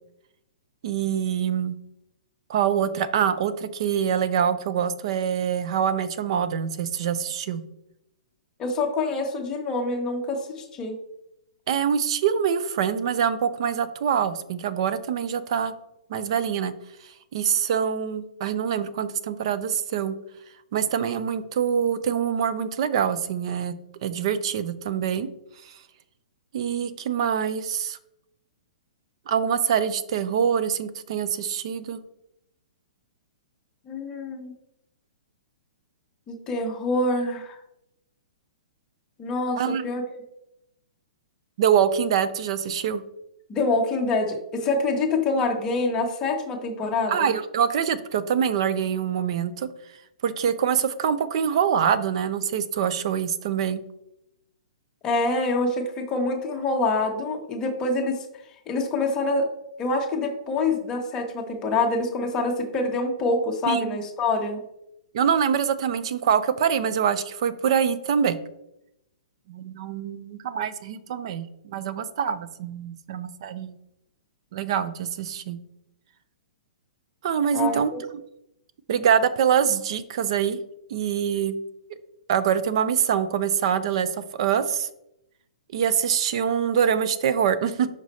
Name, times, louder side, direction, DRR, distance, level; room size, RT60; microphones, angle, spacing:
voice 1, 0.8-1.8 2.5-7.6 11.7-15.7 16.1-16.7 17.3-20.2 20.7-23.7 24.0-25.3 26.5-28.0 29.3-32.0 39.6-39.8 41.6-43.0 47.1-49.7 50.2-53.8 63.7-64.0 65.1-68.4 69.5-73.7 74.5-75.6 77.2-77.9 78.9-80.6 80.9-81.5 82.3-84.9 85.7-87.9, right 8 dB, 45° right, 13 dB, 0.5 m, -24 dB
voice 2, 8.6-11.0 33.9-34.5 36.3-37.6 39.2-40.2 43.5-47.4 55.0-58.2 58.7-59.5 59.8-64.6 77.5-78.0, left 2 dB, 15° left, 2 dB, 0.9 m, -26 dB
5.2 x 4.8 x 4.0 m, 0.83 s
hypercardioid pair, 165°, 4 cm